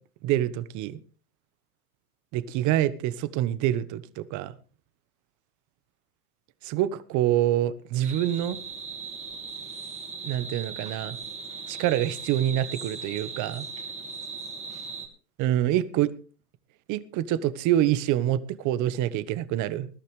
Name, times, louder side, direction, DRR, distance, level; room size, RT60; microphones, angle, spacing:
voice 1, 0.2-1.0 2.3-4.5 6.6-8.6 10.2-11.2 11.7-13.6 15.4-16.1 16.9-19.9, right 12 dB, 40° right, 16 dB, 1.2 m, -26 dB
sound 1, 8.0-15.1, right 4 dB, 15° right, 2.9 m, -38 dB
21.0 x 12.0 x 3.2 m, 0.38 s
hypercardioid pair, 115°, 46 cm